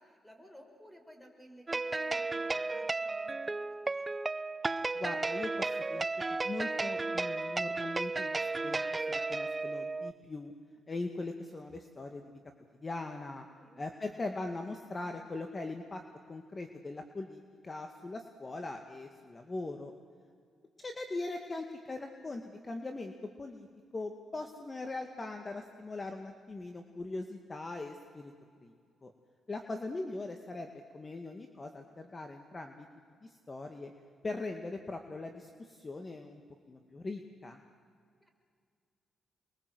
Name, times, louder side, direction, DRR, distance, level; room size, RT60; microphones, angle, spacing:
voice 1, 0.0-4.1 13.5-13.8 29.6-29.9 38.2-38.3, equal, 5° left, 3 dB, 6.1 m, -57 dB
sound 1, 1.7-10.1, right 3 dB, 25° right, 0.7 m, -34 dB
voice 2, 4.9-6.1 6.4-8.8 9.1-10.5 10.9-12.4 12.8-13.4 13.8-16.0 16.3-19.9 20.8-23.1 23.4-23.7 23.9-28.3 28.6-28.7 29.0-29.1 29.5-30.7 30.9-32.9 33.2-33.9 34.2-36.4 36.7-37.6, left 2 dB, 30° left, 5 dB, 2.1 m, -40 dB
28.5 x 22.5 x 8.0 m, 2.1 s
cardioid pair, 75°, 0 cm